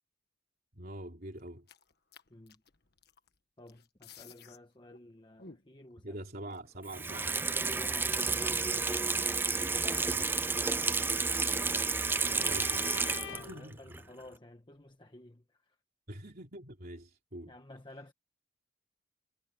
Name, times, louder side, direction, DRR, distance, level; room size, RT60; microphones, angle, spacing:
voice 1, 0.7-1.7 6.0-7.5 12.5-14.0 16.1-17.5, right 1 dB, 50° right, 3.4 m, -45 dB
sound 1, 1.4-3.4 3.7-4.6 4.9-5.0 5.4-5.9 6.5-6.6 7.0-11.6 11.9-12.0 12.4-13.0, left 3 dB, 55° left, 1.6 m, -56 dB
voice 2, 2.3-2.6 3.6-6.2 7.8-8.9 9.6-11.4 13.2-15.8 17.5-18.1, left 1 dB, 25° left, 1.2 m, -53 dB
Water tap faucet / Sink (filling or washing), 6.9-13.6 13.9-14.0, right 4 dB, 10° right, 0.4 m, -31 dB
Bowed string instrument, 10.7-13.7, left 8 dB, 70° left, 0.7 m, -46 dB
head